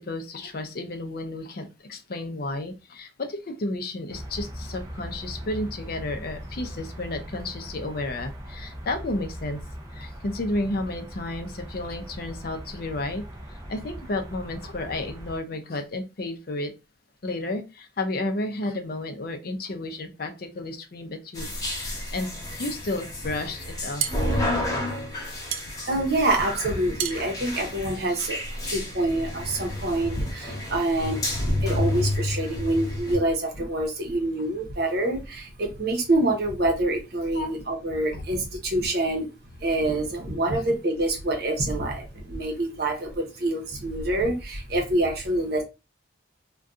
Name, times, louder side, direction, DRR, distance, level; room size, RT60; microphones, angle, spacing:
voice 1, 0.0-9.6 9.9-13.2 13.7-16.7 17.2-24.0 25.4-25.5 37.3-37.5, left 2 dB, 50° left, 6 dB, 0.5 m, -32 dB
sound 1, 4.1-15.4, equal, 20° right, 0.6 m, -40 dB
sound 2, 21.3-33.2, left 1 dB, 20° left, 0.9 m, -30 dB
sound 3, 24.0-28.6, right 9 dB, 85° right, 0.4 m, -35 dB
voice 2, 25.7-28.4 28.7-39.3 39.6-45.6, right 1 dB, 55° right, 2 dB, 0.9 m, -26 dB
2.6 x 2.3 x 3.5 m, 0.28 s
head